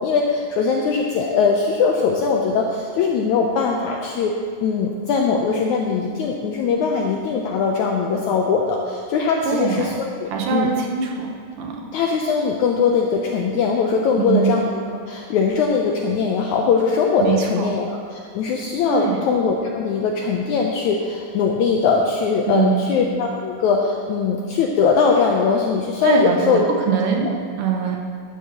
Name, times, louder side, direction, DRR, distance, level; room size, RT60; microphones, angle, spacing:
voice 1, 0.0-4.3 4.6-10.7 11.9-14.8 15.1-26.7, left 5 dB, 80° left, 0 dB, 1.7 m, -21 dB
voice 2, 9.4-9.9 10.3-11.3 11.6-11.8 14.2-14.6 17.2-17.7 18.9-19.2 22.5-22.9 26.0-27.3 27.6-28.0, right 6 dB, 75° right, 0 dB, 2.4 m, -22 dB
12.5 x 10.5 x 2.9 m, 2.3 s
omnidirectional pair, 4.1 m